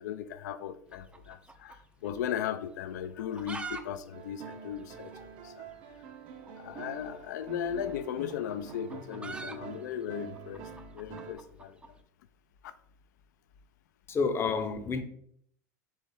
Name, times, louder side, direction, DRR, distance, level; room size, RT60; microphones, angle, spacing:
voice 1, 0.0-5.7 6.6-10.6 10.9-12.0 12.6-12.7, left 9 dB, 80° left, 0.4 m, -37 dB
sound 1, 0.9-2.2 2.5-2.6 3.1-3.8 4.1-4.2 4.4-4.5 5.1-5.2 6.4-6.6 7.7-11.9, right 3 dB, 10° right, 0.4 m, -43 dB
sound 2, 4.1-11.3, right 6 dB, 60° right, 0.7 m, -46 dB
voice 2, 14.1-15.0, left 5 dB, 25° left, 0.6 m, -29 dB
4.5 x 3.2 x 3.5 m
hypercardioid pair, 100°, 9 cm